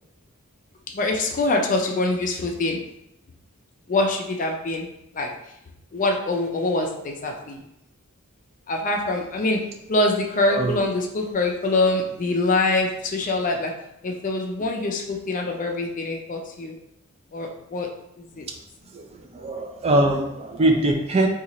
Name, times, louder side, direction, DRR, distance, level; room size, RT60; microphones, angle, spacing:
voice 1, 0.9-2.8 3.9-4.9 5.1-5.3 5.9-7.6 8.7-13.7 14.0-16.7 17.3-17.9 18.2-18.5, left 2 dB, 40° left, 2 dB, 0.4 m, -24 dB
voice 2, 10.4-10.8 18.9-19.1 19.3-21.3, right 1 dB, 30° right, 3 dB, 0.4 m, -22 dB
2.8 x 2.4 x 4.0 m, 0.82 s
head